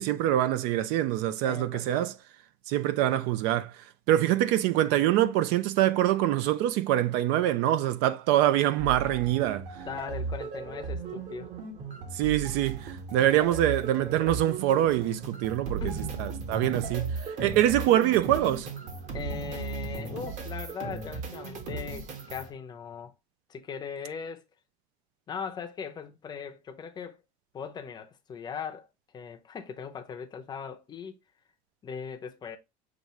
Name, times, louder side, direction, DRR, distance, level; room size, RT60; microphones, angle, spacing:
voice 1, 0.0-2.1 2.7-3.7 4.1-9.7 12.1-15.8 16.2-18.7, right 13 dB, 65° right, 0.6 m, -25 dB
voice 2, 1.4-2.1 9.8-11.5 15.8-16.2 17.3-17.4 19.1-23.1 23.5-24.4 25.3-27.2 27.5-28.9 29.1-31.2 31.8-32.6, left 6 dB, 20° left, 0.6 m, -39 dB
sound 1, 8.8-22.5, right 4 dB, 40° right, 1.3 m, -36 dB
6.7 x 2.5 x 3.1 m
cardioid pair, 160°, 19 cm